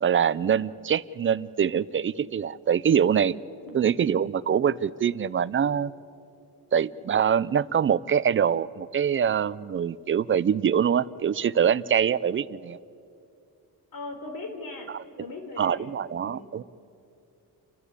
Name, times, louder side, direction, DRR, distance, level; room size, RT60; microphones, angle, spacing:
voice 1, 0.0-3.3 3.7-5.9 6.7-12.8 14.9-15.0 15.6-16.6, right 8 dB, 35° right, 18 dB, 0.4 m, -24 dB
voice 2, 13.9-16.0 16.2-16.5, left 2 dB, 65° left, 4 dB, 3.9 m, -39 dB
30.0 x 12.5 x 8.3 m, 2.6 s
cardioid pair, 140°, 38 cm